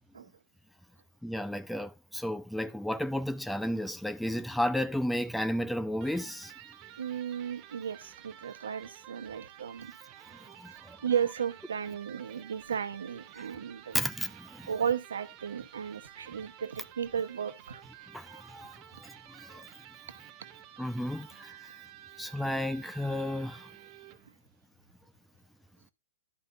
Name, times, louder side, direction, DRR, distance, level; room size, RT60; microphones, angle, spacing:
voice 1, 1.2-6.5 10.6-11.0 13.9-14.6 18.1-18.7 19.0-19.6 20.8-21.6 22.2-23.7, left 1 dB, ahead, 0.4 m, -33 dB
Electric guitar, 6.0-24.3, right 12 dB, 35° right, 0.8 m, -52 dB
voice 2, 7.0-9.9 11.0-14.0 14.7-17.8 18.9-19.0, right 7 dB, 80° right, 1.0 m, -34 dB
11.0 x 5.5 x 2.6 m
hypercardioid pair, 125°, 0 cm